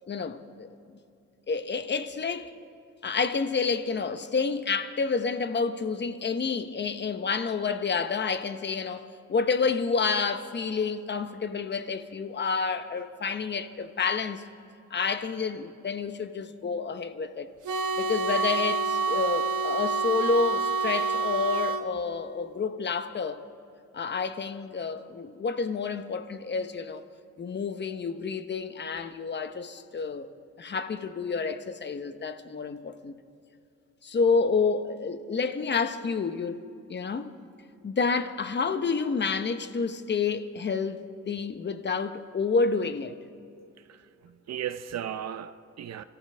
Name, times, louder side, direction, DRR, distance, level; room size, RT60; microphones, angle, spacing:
voice 1, 0.1-0.7 1.5-2.5 3.0-14.4 14.9-17.5 18.0-23.4 23.9-27.0 27.4-30.3 30.6-33.1 34.0-36.6 36.9-37.3 37.8-43.2, left 5 dB, 35° left, 0.9 m, -29 dB
sound 1, 17.6-21.8, right 4 dB, 80° right, 1.2 m, -27 dB
voice 2, 43.9-46.0, right 10 dB, 60° right, 0.6 m, -36 dB
30.0 x 14.0 x 3.4 m
cardioid pair, 110°, 30 cm